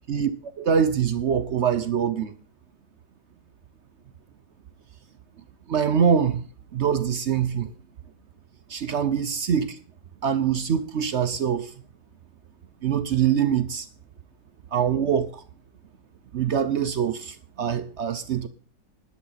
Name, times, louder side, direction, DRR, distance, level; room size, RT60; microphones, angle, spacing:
voice 1, 0.6-2.3 5.7-6.4 6.7-7.7 8.7-9.8 10.2-11.7 12.8-13.9 14.7-15.4 16.3-18.5, right 8 dB, 60° right, 0.8 m, -24 dB
13.0 x 10.5 x 4.1 m
omnidirectional pair, 1.9 m